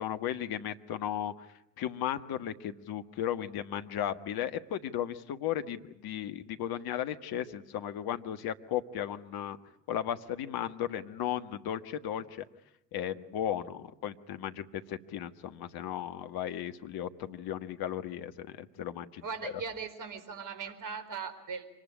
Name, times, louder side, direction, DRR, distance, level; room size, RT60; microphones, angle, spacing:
voice 1, 0.0-1.4 1.8-9.6 9.9-12.4 12.9-19.5, left 10 dB, 50° left, 10 dB, 1.6 m, -35 dB
voice 2, 19.2-21.7, right 5 dB, 40° right, 9 dB, 4.4 m, -39 dB
25.0 x 19.5 x 10.0 m, 0.85 s
figure-of-eight pair, 55°, 48 cm